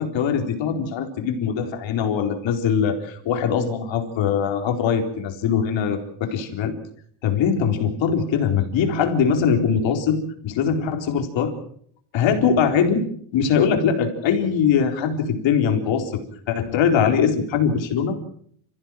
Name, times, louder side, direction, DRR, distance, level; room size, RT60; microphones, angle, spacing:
voice 1, 0.0-6.7 7.2-11.5 12.1-13.0 13.3-16.2 16.5-18.3, left 7 dB, 65° left, 5 dB, 4.2 m, -22 dB
28.0 x 15.5 x 7.6 m, 0.64 s
cardioid pair, 140°, 48 cm